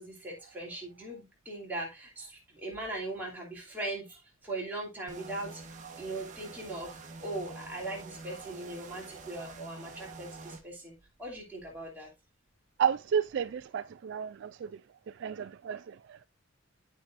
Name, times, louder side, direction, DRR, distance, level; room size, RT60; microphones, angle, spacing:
voice 1, 0.0-5.6 6.0-10.9 11.2-12.1, right 2 dB, 10° right, 2.9 m, -40 dB
sound 1, 5.1-10.6, right 3 dB, 40° right, 1.2 m, -46 dB
voice 2, 12.8-14.8 15.1-16.3, right 8 dB, 55° right, 0.3 m, -32 dB
13.0 x 4.7 x 2.5 m
head